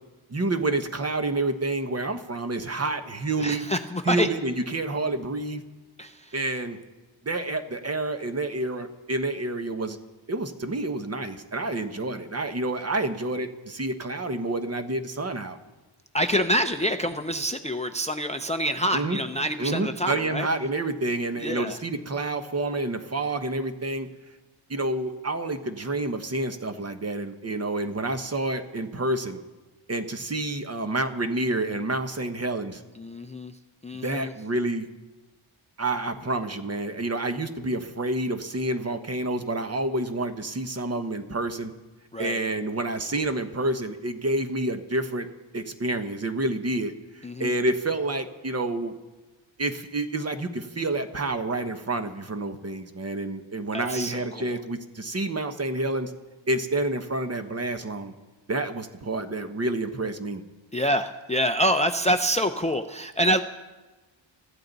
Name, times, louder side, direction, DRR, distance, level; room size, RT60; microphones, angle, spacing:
voice 1, 0.3-3.7 4.0-5.6 6.3-6.8 7.2-10.0 10.3-15.6 18.9-19.2 19.6-24.1 24.7-29.4 29.9-32.8 34.0-34.9 35.8-41.7 42.2-45.3 45.5-48.9 49.6-56.1 56.5-58.1 58.5-60.4, right 2 dB, 30° right, 8 dB, 1.0 m, -28 dB
voice 2, 3.4-4.3 6.0-6.3 16.1-20.5 21.4-21.8 33.0-33.5 33.8-34.3 42.1-42.4 47.2-47.5 53.7-54.6 60.7-63.4, equal, 15° left, 8 dB, 0.5 m, -26 dB
24.5 x 14.5 x 4.0 m, 1.2 s
wide cardioid pair, 145°, 48 cm